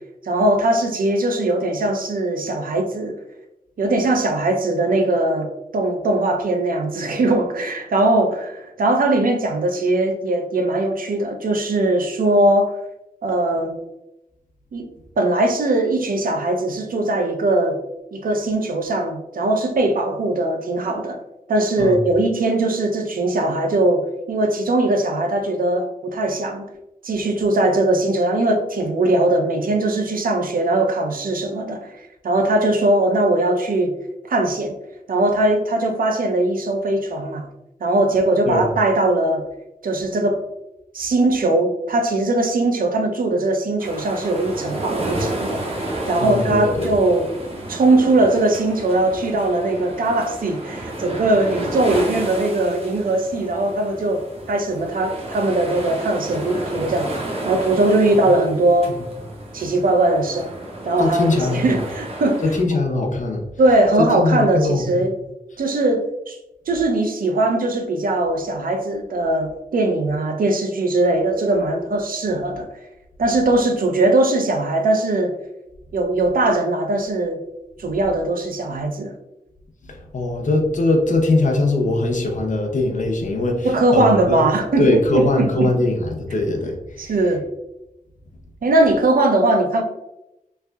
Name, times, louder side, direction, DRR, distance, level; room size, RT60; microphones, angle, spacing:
voice 1, 0.2-3.1 3.8-5.5 5.7-12.8 13.2-13.8 14.7-14.9 15.2-17.8 18.1-21.2 21.5-26.6 27.0-34.0 34.3-34.8 35.1-37.5 37.8-39.4 39.8-40.4 40.9-45.6 46.1-47.3 47.7-57.1 57.4-59.0 59.5-60.5 60.8-62.4 63.6-65.2 65.6-66.4 66.7-72.6 73.2-75.4 75.9-77.4 77.8-79.1 83.6-85.7 87.0-87.4 88.6-89.8, right 2 dB, 65° right, 4 dB, 0.6 m, -20 dB
sound 1, 43.8-62.6, right 1 dB, 40° right, 1.0 m, -31 dB
voice 2, 46.2-46.9 61.0-61.8 62.4-63.4 64.2-65.0 79.9-84.4 84.8-87.2, left 2 dB, 55° left, 2 dB, 0.7 m, -21 dB
3.3 x 3.3 x 2.3 m, 0.90 s
wide cardioid pair, 80°, 15 cm